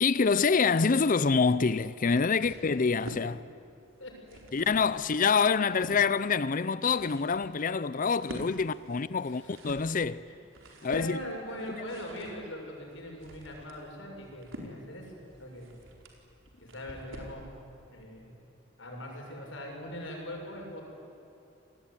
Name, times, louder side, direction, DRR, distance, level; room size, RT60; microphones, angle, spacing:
voice 1, 0.0-3.4 4.5-10.3 10.8-11.2 11.7-11.8, left 5 dB, 45° left, 0.5 m, -26 dB
sound 1, 2.8-3.3 4.0-4.9 5.4-6.0 6.6-17.4, equal, 90° right, 4.5 m, -47 dB
voice 2, 4.0-4.4 8.6-8.7 9.2-9.6 10.3-10.4 10.8-15.7 16.6-17.5 17.8-18.4 18.8-20.8, left 1 dB, 75° left, 7.1 m, -41 dB
28.0 x 20.0 x 9.8 m
head